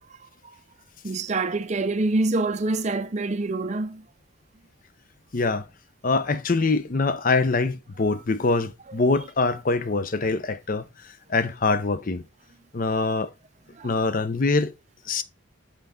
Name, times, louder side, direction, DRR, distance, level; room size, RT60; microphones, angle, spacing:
voice 1, 1.0-4.1 13.8-13.9, right 2 dB, 35° right, 0.5 m, -26 dB
voice 2, 5.3-5.7 6.0-10.9 11.3-12.2 12.7-13.3 13.8-14.7 15.1-15.2, left 3 dB, 40° left, 0.6 m, -24 dB
5.7 x 5.3 x 3.8 m
head